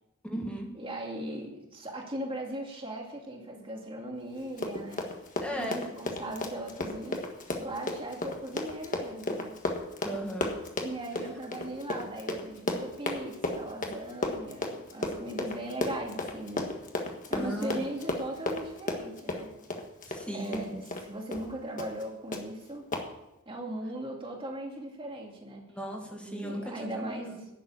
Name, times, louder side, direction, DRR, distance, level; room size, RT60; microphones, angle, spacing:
voice 1, 0.2-0.7 5.4-5.8 10.0-10.5 17.3-17.8 20.1-20.8 25.7-27.2, equal, 5° left, 0 dB, 1.8 m, -36 dB
voice 2, 0.8-5.1 5.5-9.6 10.8-16.7 17.3-19.6 20.3-22.9 23.5-25.7 26.1-27.5, right 1 dB, 25° right, 0 dB, 2.3 m, -38 dB
Run, 4.4-21.1 21.3-21.5 21.8-22.0 22.3-22.4 22.9-23.1, left 2 dB, 35° left, 1.6 m, -34 dB
11.0 x 7.3 x 8.6 m, 0.90 s
head